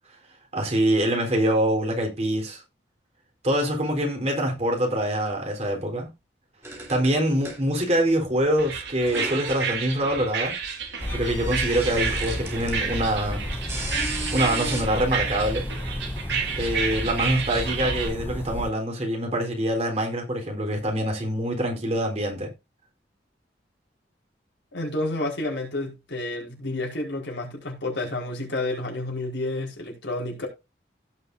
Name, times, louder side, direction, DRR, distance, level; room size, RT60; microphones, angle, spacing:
voice 1, 0.5-2.6 3.4-6.1 6.9-10.6 11.1-13.5 14.3-15.7 16.6-22.5, right 1 dB, 35° right, 4.0 m, -25 dB
sound 1, 6.6-8.0 8.3-9.7 10.4-12.9 13.2-14.8, right 2 dB, 15° right, 3.8 m, -36 dB
sound 2, 8.6-18.1, right 6 dB, 75° right, 3.1 m, -31 dB
sound 3, 11.0-18.7, left 1 dB, 10° left, 0.5 m, -32 dB
voice 2, 24.7-30.5, left 2 dB, 90° left, 4.7 m, -30 dB
16.5 x 5.9 x 2.7 m
head